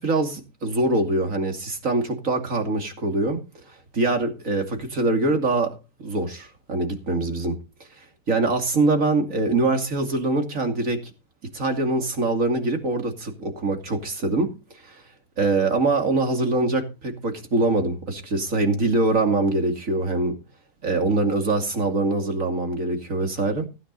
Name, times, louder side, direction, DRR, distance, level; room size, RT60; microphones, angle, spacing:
voice 1, 0.0-3.4 3.9-5.7 6.0-7.6 8.3-11.1 11.5-14.5 14.9-15.0 15.4-20.3 20.8-23.7, right 2 dB, 60° right, 2.9 m, -23 dB
16.5 x 9.3 x 4.0 m
omnidirectional pair, 1.6 m